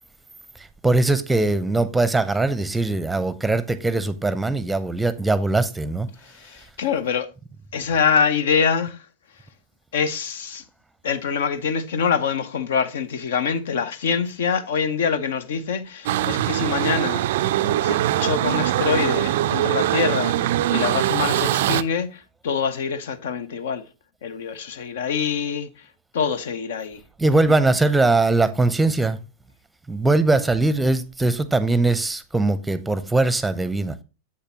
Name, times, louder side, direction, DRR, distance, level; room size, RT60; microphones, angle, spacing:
voice 1, 0.6-6.1 16.3-16.5 27.2-29.2 29.9-33.9, right 2 dB, 5° right, 0.7 m, -21 dB
voice 2, 6.2-7.3 7.7-9.0 9.9-10.6 11.0-17.2 17.6-23.8 24.2-25.7 26.1-27.0 27.5-27.6, left 6 dB, 60° left, 0.7 m, -25 dB
sound 1, 16.1-21.8, right 13 dB, 55° right, 0.3 m, -22 dB
7.7 x 6.7 x 2.9 m
figure-of-eight pair, 90°, 0 cm